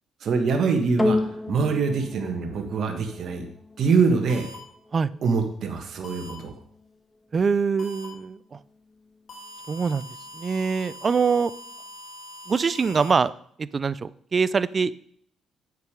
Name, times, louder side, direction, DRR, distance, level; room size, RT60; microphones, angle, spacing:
voice 1, 0.2-1.2 1.5-3.4 3.8-4.5 5.2-6.5, right 5 dB, 60° right, 4 dB, 1.5 m, -24 dB
sound 1, 1.0-9.5 10.3-10.4, left 2 dB, 15° left, 1.2 m, -34 dB
sound 2, 4.3-4.5 6.0-6.3 7.8-8.0 9.3-13.1, left 1 dB, 60° left, 3.2 m, -43 dB
voice 2, 7.3-8.6 9.7-10.1 10.3-11.5 12.5-13.3 13.6-14.9, right 5 dB, 40° right, 18 dB, 0.4 m, -24 dB
8.3 x 6.8 x 4.8 m, 0.62 s
cardioid pair, 90°, 0 cm